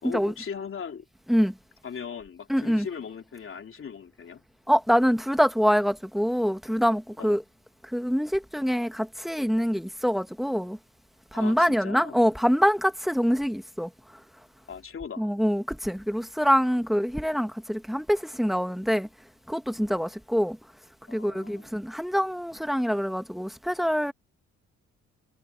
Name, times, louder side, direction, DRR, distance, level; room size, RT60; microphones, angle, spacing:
voice 1, 0.0-1.1 1.8-4.4 7.2-7.4 11.3-12.2 14.7-15.3 19.9-20.1 21.1-21.7, left 6 dB, 45° left, 3.0 m, -39 dB
voice 2, 2.5-2.9 4.7-7.4 7.9-10.8 11.3-13.9 15.2-19.1 19.5-20.6 21.1-24.1, equal, ahead, 1.5 m, -25 dB
cardioid pair, 90°, 30 cm